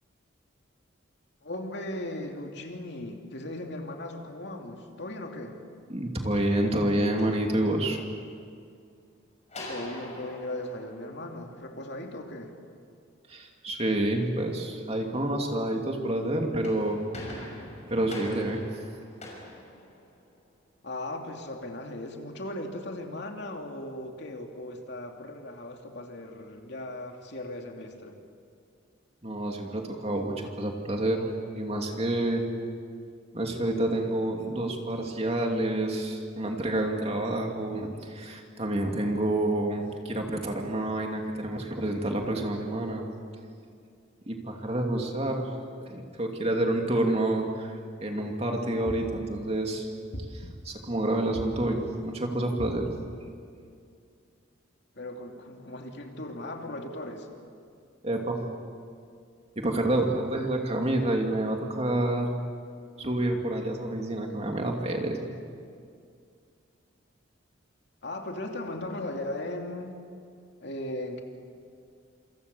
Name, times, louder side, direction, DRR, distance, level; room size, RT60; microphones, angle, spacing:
voice 1, 1.4-5.6 9.7-12.5 20.8-28.2 54.9-57.3 68.0-70.0 70.6-71.2, left 1 dB, 55° left, 2 dB, 2.7 m, -37 dB
voice 2, 5.9-8.0 13.3-17.0 17.3-17.5 17.9-18.7 29.2-32.5 33.3-43.1 44.3-45.5 45.9-49.9 50.3-52.9 58.0-58.4 59.6-62.3 63.0-65.3, right 1 dB, 30° right, 2 dB, 2.7 m, -28 dB
sound 1, 7.2-8.2 9.5-12.0 16.4-20.5, left 1 dB, 35° left, 6.0 m, -44 dB
sound 2, 48.8-49.5 50.1-50.8 51.3-52.0 52.6-53.2, equal, 75° left, 3.4 m, -39 dB
27.5 x 26.5 x 7.0 m, 2.3 s
head